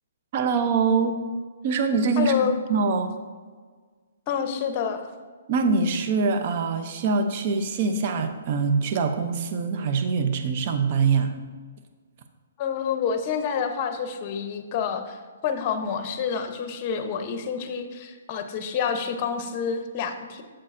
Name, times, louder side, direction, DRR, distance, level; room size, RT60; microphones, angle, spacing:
voice 1, 0.3-1.2 1.6-3.1 5.5-11.3, right 4 dB, 45° right, 7 dB, 0.7 m, -24 dB
voice 2, 2.2-2.5 4.3-5.1 12.6-20.4, left 7 dB, 35° left, 7 dB, 0.8 m, -28 dB
8.1 x 7.6 x 2.6 m, 1.5 s
hypercardioid pair, 145°, 0 cm